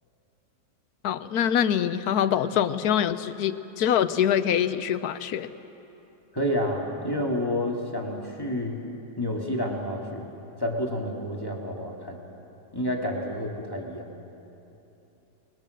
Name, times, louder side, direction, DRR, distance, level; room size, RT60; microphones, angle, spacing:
voice 1, 1.0-5.5, left 9 dB, 75° left, 12 dB, 1.2 m, -24 dB
voice 2, 6.3-8.8 9.2-10.3 10.6-12.2 12.7-14.1, left 1 dB, 15° left, -1 dB, 2.3 m, -29 dB
28.5 x 21.0 x 6.5 m, 2.9 s
omnidirectional pair, 1.7 m